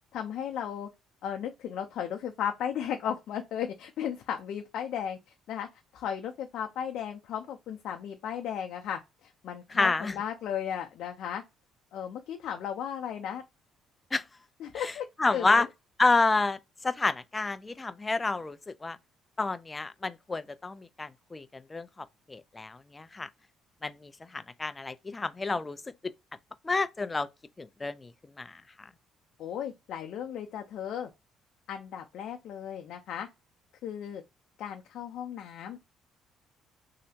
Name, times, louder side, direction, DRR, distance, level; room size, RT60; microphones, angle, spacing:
voice 1, 0.1-0.9 1.2-5.2 5.5-5.7 5.9-11.4 11.9-13.4 14.6-15.1 15.3-15.7 29.4-31.1 31.7-33.3 33.8-34.2 34.6-35.8, left 9 dB, 65° left, 0.5 m, -35 dB
voice 2, 9.7-10.1 14.1-14.2 14.7-14.9 15.2-15.7 16.0-19.0 19.4-23.3 23.8-25.8 26.0-26.1 26.6-27.3 27.6-28.1 28.4-28.6, left 3 dB, 20° left, 0.4 m, -29 dB
3.2 x 2.8 x 2.8 m
cardioid pair, 125°, 0 cm